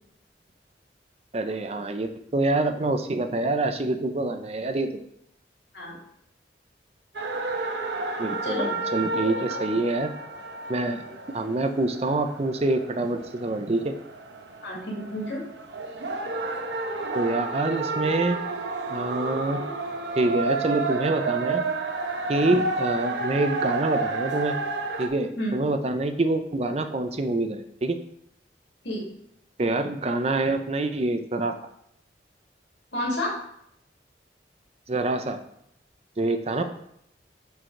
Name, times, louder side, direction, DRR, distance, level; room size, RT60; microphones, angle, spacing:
voice 1, 1.3-5.0 8.2-10.1 10.7-13.9 17.1-18.4 18.9-19.7 20.2-21.6 22.3-24.6 25.0-28.0 29.6-31.5 34.9-35.4 36.2-36.6, right 2 dB, 35° right, 8 dB, 0.5 m, -26 dB
sound 1, 7.1-25.1, right 3 dB, 80° right, 0.9 m, -31 dB
voice 2, 14.6-15.4 25.4-25.6 28.8-29.0 32.9-33.3, equal, 75° left, -4 dB, 2.3 m, -30 dB
6.3 x 4.9 x 4.5 m, 0.74 s
head